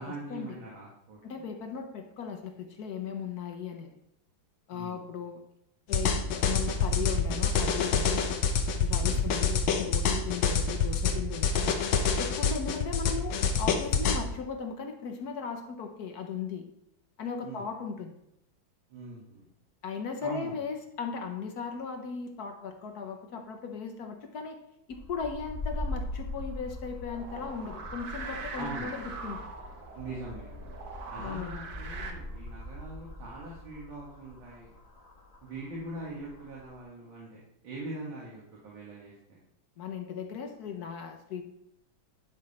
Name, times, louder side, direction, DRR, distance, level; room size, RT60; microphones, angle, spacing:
voice 1, 0.0-1.2 4.7-5.0 9.0-9.3 17.4-17.7 18.9-19.5 20.2-20.5 28.5-29.0 29.9-30.7 31.1-34.7 35.4-39.4, right 2 dB, 80° right, -6 dB, 2.6 m, -42 dB
voice 2, 1.2-3.9 4.7-5.4 5.9-8.2 8.8-11.7 12.2-16.6 17.2-18.2 19.8-24.6 24.9-29.5 31.2-31.6 39.8-41.4, left 6 dB, 60° left, 5 dB, 1.1 m, -37 dB
sound 1, 5.9-14.2, left 5 dB, 85° left, 1.7 m, -26 dB
sound 2, 24.9-36.8, left 1 dB, 25° left, 0.9 m, -42 dB
sound 3, 27.1-32.1, right 4 dB, 55° right, 1.4 m, -42 dB
10.5 x 5.4 x 4.2 m, 0.79 s
omnidirectional pair, 2.2 m